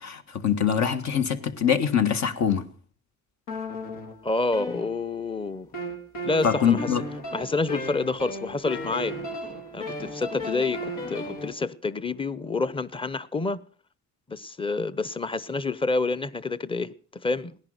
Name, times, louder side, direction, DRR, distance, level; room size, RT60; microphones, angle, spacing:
voice 1, 0.0-2.7 6.4-7.0, left 8 dB, 65° left, 1.6 m, -23 dB
sound 1, 3.5-5.3 5.7-11.5, equal, 85° left, 2.8 m, -35 dB
voice 2, 4.2-5.7 6.2-6.9 7.3-9.2 9.7-13.6 14.3-17.6, left 3 dB, 15° left, 0.8 m, -28 dB
17.0 x 10.5 x 6.5 m
cardioid pair, 90°, 30 cm